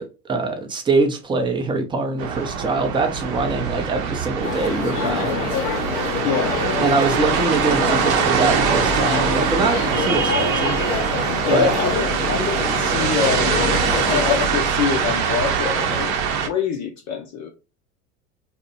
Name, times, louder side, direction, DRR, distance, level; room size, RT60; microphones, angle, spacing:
voice 1, 0.0-5.5 6.8-10.8 11.5-11.8, right 3 dB, 10° right, 0.4 m, -23 dB
sound 1, 2.2-16.5, right 6 dB, 60° right, 0.7 m, -23 dB
sound 2, 4.4-14.5, left 7 dB, 80° left, 0.6 m, -27 dB
voice 2, 6.2-6.6 11.5-13.6 14.1-17.5, left 6 dB, 40° left, 0.5 m, -25 dB
2.6 x 2.1 x 2.6 m
hypercardioid pair, 85°, 46 cm